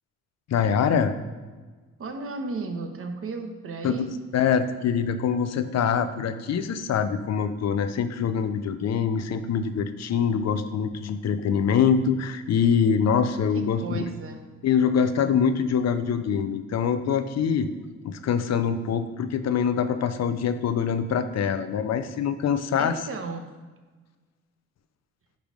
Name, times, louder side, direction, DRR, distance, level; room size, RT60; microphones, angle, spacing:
voice 1, 0.5-1.1 3.8-4.1 4.3-14.1 14.6-17.7 18.0-23.0, left 7 dB, 60° left, 10 dB, 0.7 m, -24 dB
voice 2, 2.0-4.1 13.5-14.4 22.8-23.5, right 3 dB, 45° right, 5 dB, 1.2 m, -34 dB
10.5 x 3.6 x 5.1 m, 1.3 s
cardioid pair, 90°, 30 cm